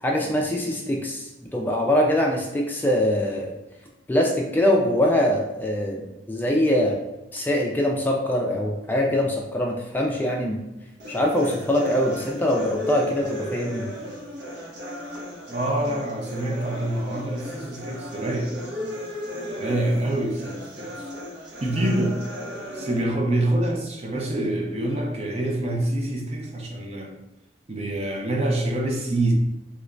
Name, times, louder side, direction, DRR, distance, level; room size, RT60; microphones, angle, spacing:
voice 1, 0.0-3.5 4.1-7.0 7.3-10.6 11.1-13.8, left 1 dB, 10° left, -1 dB, 0.4 m, -23 dB
sound 1, 11.0-23.0, left 1 dB, 70° right, 0.9 m, -35 dB
voice 2, 15.5-18.6 19.6-21.1 21.6-22.2 22.7-27.2 27.7-29.3, right 1 dB, 35° right, 1 dB, 0.6 m, -26 dB
3.0 x 2.5 x 3.3 m, 0.97 s
head